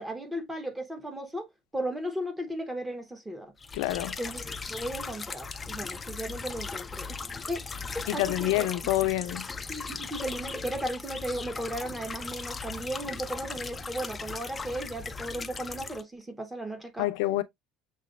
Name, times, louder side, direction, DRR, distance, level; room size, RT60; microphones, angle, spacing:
voice 1, 0.0-1.5 1.7-3.5 4.2-7.2 7.5-7.6 7.9-8.7 9.7-17.1, right 1 dB, 5° right, 0.8 m, -36 dB
sound 1, 3.6-16.0, left 4 dB, 15° left, 0.3 m, -38 dB
voice 2, 3.7-4.2 8.1-9.5 17.0-17.4, left 15 dB, 85° left, 0.5 m, -27 dB
6.6 x 2.8 x 2.3 m
cardioid pair, 150°, 0 cm